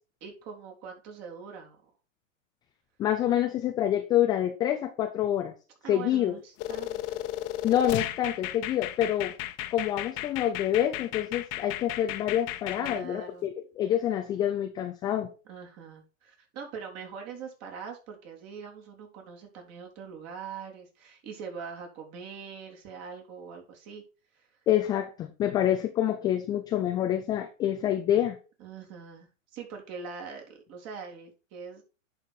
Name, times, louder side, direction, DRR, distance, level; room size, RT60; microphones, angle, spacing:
voice 1, 0.2-1.9 5.8-7.3 12.8-13.5 15.5-24.0 24.3-24.5 28.6-31.8, right 6 dB, 40° right, 1 dB, 3.5 m, -43 dB
voice 2, 3.0-5.5 5.9-6.3 7.6-9.3 9.7-13.5 13.8-15.3 24.7-28.4, left 11 dB, 10° left, 5 dB, 0.3 m, -27 dB
sound 1, 6.6-13.0, left 14 dB, 35° left, 1.0 m, -35 dB
10.5 x 4.9 x 4.2 m, 0.33 s
hypercardioid pair, 125°, 39 cm